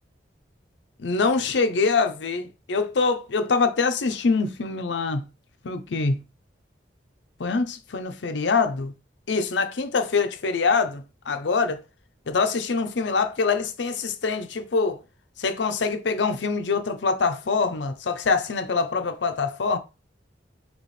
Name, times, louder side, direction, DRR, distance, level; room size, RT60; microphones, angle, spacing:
voice 1, 1.0-5.2 5.6-6.2 7.4-8.9 9.3-11.8 12.3-15.0 15.4-19.8, left 4 dB, 75° left, 0.6 m, -24 dB
4.2 x 3.0 x 3.2 m
head